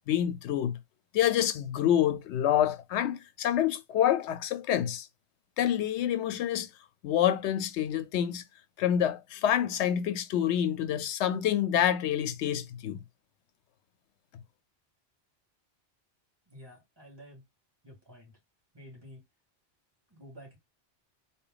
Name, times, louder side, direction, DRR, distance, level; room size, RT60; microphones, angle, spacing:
voice 1, 0.1-0.8 1.1-5.1 5.6-6.7 7.0-8.4 8.8-13.0, left 10 dB, 90° left, 0.9 m, -27 dB
voice 2, 16.5-17.4 17.8-18.3 18.7-19.2 20.1-20.6, equal, 20° right, 2.5 m, -50 dB
3.9 x 2.2 x 3.8 m
omnidirectional pair, 1.1 m